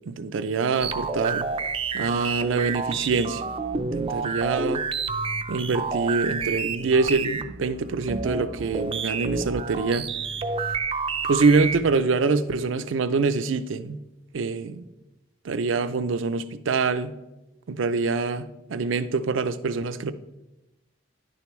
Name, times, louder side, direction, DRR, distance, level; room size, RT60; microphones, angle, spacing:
voice 1, 0.1-1.5 1.9-3.4 3.8-4.8 5.5-10.1 11.3-14.0 14.3-14.8 15.4-17.1 17.7-20.1, right 4 dB, 85° right, 0.5 m, -25 dB
sound 1, 0.8-12.0, right 5 dB, 30° right, 0.4 m, -29 dB
10.5 x 6.9 x 3.1 m
head